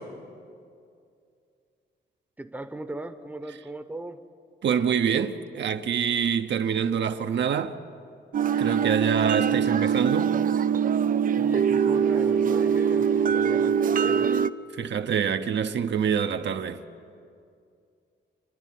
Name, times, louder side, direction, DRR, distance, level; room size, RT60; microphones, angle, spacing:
voice 1, 2.4-4.2 11.4-14.3, right 2 dB, 10° right, 0.8 m, -38 dB
voice 2, 4.6-7.8 8.6-10.4 14.7-16.8, right 7 dB, 65° right, 0.9 m, -26 dB
sound 1, 8.3-14.5, right 7 dB, 45° right, 0.4 m, -23 dB
28.5 x 11.5 x 9.3 m
wide cardioid pair, 155°, 20 cm